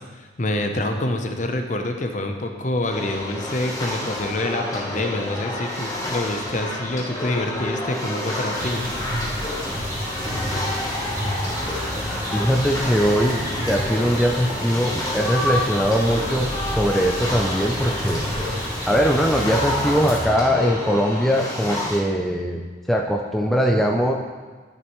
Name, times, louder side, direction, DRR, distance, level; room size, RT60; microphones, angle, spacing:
voice 1, 0.0-8.9, left 1 dB, 40° left, 5 dB, 0.7 m, -26 dB
sound 1, 2.9-22.0, left 1 dB, 15° left, 1.0 m, -29 dB
sound 2, 8.5-20.2, equal, 15° right, 2.6 m, -30 dB
voice 2, 12.3-18.2 18.9-22.6 22.9-24.1, equal, ahead, 0 dB, 0.4 m, -21 dB
12.0 x 6.5 x 3.1 m, 1.4 s
head